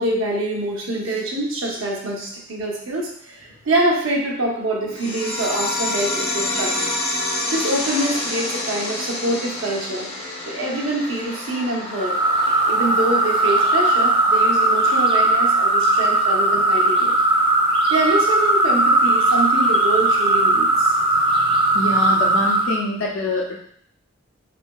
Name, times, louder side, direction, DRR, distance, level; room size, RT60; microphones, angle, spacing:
voice 1, 0.0-6.9 7.5-10.1 10.5-12.2 12.7-17.1 17.9-20.9, right 1 dB, 70° right, -2 dB, 0.8 m, -25 dB
sound 1, 4.9-16.0, left 2 dB, 25° left, 0.5 m, -29 dB
sound 2, 12.0-22.8, right 2 dB, 25° right, 0.3 m, -18 dB
voice 2, 21.7-23.6, left 2 dB, 75° left, -1 dB, 0.5 m, -24 dB
3.4 x 2.7 x 2.3 m, 0.65 s
head